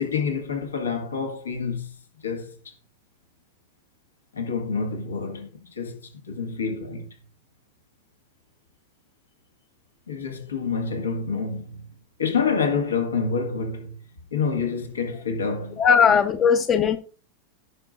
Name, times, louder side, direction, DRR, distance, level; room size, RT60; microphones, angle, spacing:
voice 1, 0.0-2.0 2.2-2.6 4.3-7.1 10.1-14.0 14.3-16.2, left 5 dB, 70° left, 1.9 m, -28 dB
voice 2, 15.8-17.0, left 7 dB, 25° left, 0.9 m, -18 dB
16.5 x 6.2 x 2.5 m
figure-of-eight pair, 90°, 0 cm